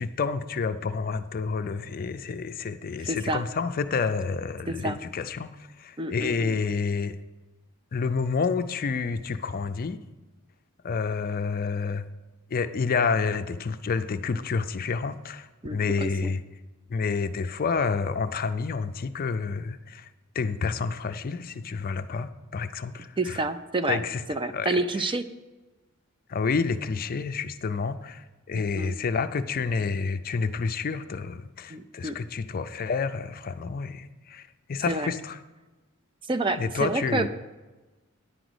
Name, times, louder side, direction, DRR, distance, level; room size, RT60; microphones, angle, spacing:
voice 1, 0.0-5.5 5.8-7.2 7.9-10.0 10.8-12.0 12.5-16.4 16.9-20.1 20.3-23.4 23.9-24.2 24.5-24.7 26.3-35.4 36.6-37.3, left 5 dB, 45° left, 10 dB, 0.4 m, -29 dB
voice 2, 3.0-3.4 4.7-5.0 6.0-6.6 15.6-16.3 23.2-24.0 24.3-25.2 28.5-29.0 31.7-32.2 34.9-35.1 36.3-37.3, right 2 dB, 25° right, 10 dB, 0.4 m, -29 dB
10.0 x 5.0 x 7.9 m, 1.2 s
head